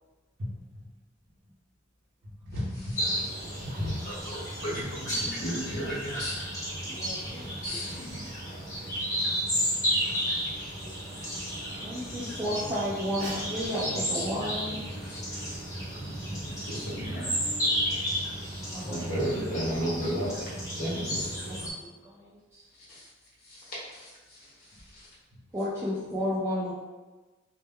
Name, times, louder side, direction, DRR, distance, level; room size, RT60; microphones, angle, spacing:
voice 1, 0.4-0.9 2.2-3.3 3.5-4.0 13.2-13.5 16.2-16.6 24.7-24.8, left 1 dB, 65° right, -6 dB, 0.8 m, -36 dB
sound 1, 3.0-21.7, equal, 15° left, 0.9 m, -33 dB
voice 2, 4.0-6.5 7.5-8.3 14.1-14.3 14.9-15.2 16.4-17.3 18.9-21.3 22.9-23.1 23.4-25.1, equal, 50° left, -7 dB, 1.0 m, -35 dB
voice 3, 6.9-7.4 11.8-14.8 18.7-19.0 21.4-22.7 25.5-26.7, equal, 15° right, -8 dB, 0.3 m, -33 dB
2.1 x 2.1 x 3.5 m, 1.2 s
head